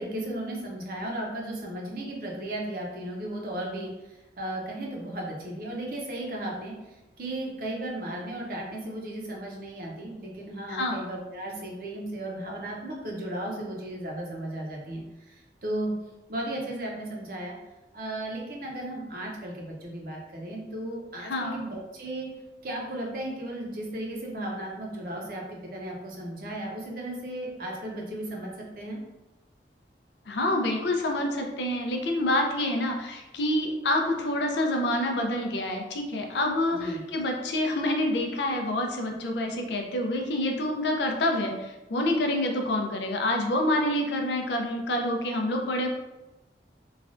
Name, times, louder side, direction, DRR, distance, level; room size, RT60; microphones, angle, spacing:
voice 1, 0.0-15.9 16.3-17.5 17.9-22.3 22.6-29.0 36.7-37.0, right 1 dB, 50° right, -1 dB, 0.6 m, -35 dB
voice 2, 10.7-11.0 21.2-21.6 30.3-45.9, left 1 dB, 80° left, 2 dB, 0.5 m, -27 dB
3.2 x 2.3 x 2.4 m, 1.1 s
head